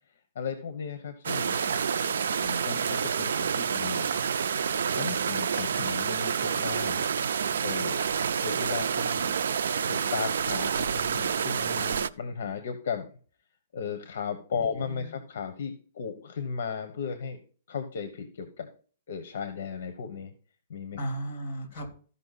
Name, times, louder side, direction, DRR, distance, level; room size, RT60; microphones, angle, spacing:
voice 1, 0.3-1.7 2.4-4.2 4.7-7.1 7.6-8.0 8.4-9.3 9.9-13.1 13.7-17.4 17.7-18.7 19.1-20.3 20.7-21.0, left 6 dB, 60° left, 9 dB, 1.1 m, -35 dB
sound 1, 1.2-12.1, right 7 dB, 85° right, 0.4 m, -28 dB
voice 2, 14.5-15.2 21.0-21.9, right 1 dB, 35° left, 4 dB, 3.3 m, -36 dB
14.0 x 5.5 x 4.1 m, 0.42 s
hypercardioid pair, 170°, 0 cm